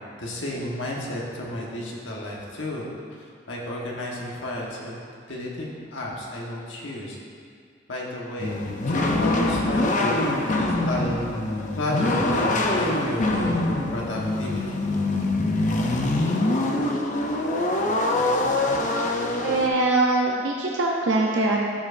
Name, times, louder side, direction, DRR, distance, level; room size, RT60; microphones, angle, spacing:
voice 1, 0.2-2.9 3.2-5.0 5.3-7.2 7.9-11.3 11.7-14.8, left 1 dB, 80° left, -3 dB, 1.3 m, -32 dB
sound 1, 8.4-19.7, left 2 dB, 40° left, 0.5 m, -24 dB
voice 2, 19.4-21.6, right 2 dB, 70° right, -2 dB, 0.6 m, -22 dB
13.0 x 4.7 x 2.6 m, 2.2 s
head